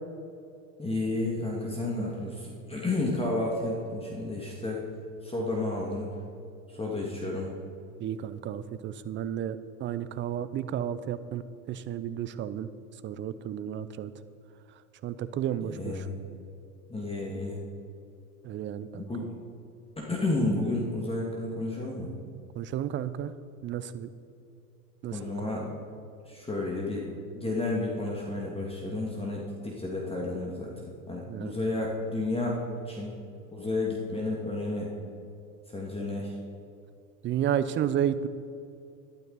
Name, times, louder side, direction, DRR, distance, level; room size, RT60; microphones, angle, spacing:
voice 1, 0.8-4.8 5.2-6.1 6.7-7.5 15.5-16.2 16.9-17.6 18.9-19.3 20.0-22.1 25.1-25.7 26.3-27.1 27.3-33.1 33.5-34.9 35.7-36.3, left 2 dB, 10° left, -2 dB, 1.9 m, -31 dB
voice 2, 8.0-11.4 11.7-12.7 13.0-14.1 15.0-15.9 18.4-19.1 22.6-23.3 23.6-24.1 25.0-25.5 31.3-31.6 37.2-38.3, right 10 dB, 25° right, 14 dB, 0.5 m, -32 dB
12.0 x 12.0 x 4.0 m, 2.6 s
hypercardioid pair, 100°, 46 cm